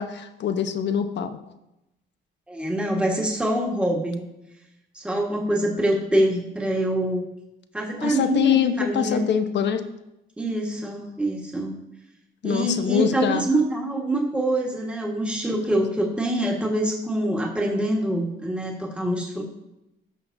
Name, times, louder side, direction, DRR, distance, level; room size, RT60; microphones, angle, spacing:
voice 1, 0.0-1.4 8.0-9.8 12.4-13.5, left 8 dB, 60° left, 8 dB, 0.9 m, -24 dB
voice 2, 2.5-4.2 4.9-7.2 7.7-9.3 10.4-11.8 12.4-19.4, right 1 dB, 5° right, -2 dB, 1.5 m, -25 dB
14.5 x 5.8 x 2.7 m, 0.91 s
cardioid pair, 90°, 20 cm